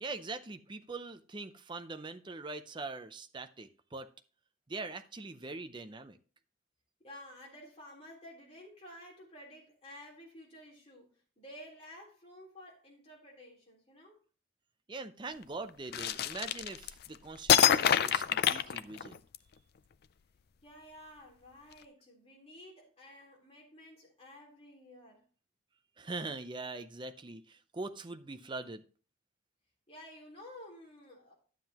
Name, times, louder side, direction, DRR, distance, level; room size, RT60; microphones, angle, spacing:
voice 1, 0.0-4.1 4.7-6.2 14.9-19.2 26.0-28.8, right 3 dB, 25° right, 0.5 m, -42 dB
voice 2, 7.0-11.1 11.4-14.2 20.6-25.2 29.9-31.3, left 1 dB, 30° left, 3.6 m, -52 dB
sound 1, 15.9-17.1 17.5-19.4, left 9 dB, 55° left, 0.4 m, -26 dB
11.0 x 7.5 x 2.9 m
head